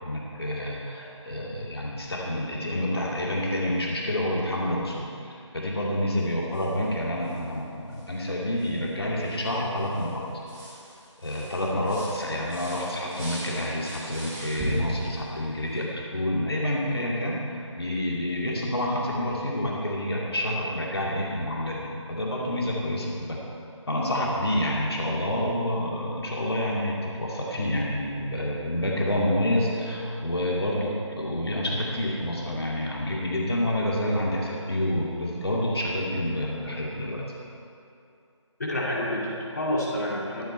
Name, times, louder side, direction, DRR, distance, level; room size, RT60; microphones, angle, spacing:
voice 1, 0.0-10.3 11.2-17.4 17.8-23.4 23.9-37.2, left 1 dB, 55° left, -3 dB, 2.4 m, -28 dB
sound 1, 6.5-6.9 7.2-7.4 7.9-8.1 8.6-15.8, equal, 5° right, 2.5 m, -37 dB
voice 2, 38.6-40.4, left 1 dB, 35° left, -5 dB, 2.5 m, -28 dB
25.0 x 8.3 x 4.5 m, 2.6 s
figure-of-eight pair, 170°, 16 cm